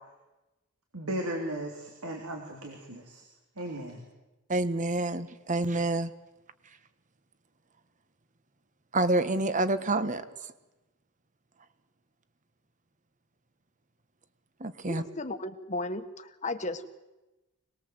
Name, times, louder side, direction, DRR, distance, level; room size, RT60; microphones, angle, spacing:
voice 1, 0.9-3.2 3.6-4.0, right 1 dB, 80° right, 2 dB, 3.8 m, -36 dB
voice 2, 4.5-6.1 8.9-10.2 14.6-15.0, right 2 dB, 35° right, 12 dB, 1.3 m, -27 dB
voice 3, 14.9-16.8, left 2 dB, 35° left, 8 dB, 1.5 m, -35 dB
26.5 x 20.0 x 8.0 m, 1.1 s
head